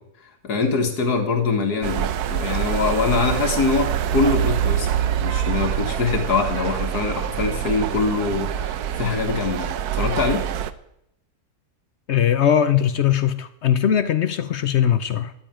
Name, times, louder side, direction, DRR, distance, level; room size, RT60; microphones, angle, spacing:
voice 1, 0.4-4.9 5.2-10.5, left 4 dB, 80° left, 2.1 m, -23 dB
sound 1, 1.8-10.7, right 10 dB, 80° right, 1.2 m, -25 dB
voice 2, 12.1-15.3, left 9 dB, 60° left, 0.8 m, -20 dB
11.5 x 8.8 x 8.9 m
omnidirectional pair, 1.6 m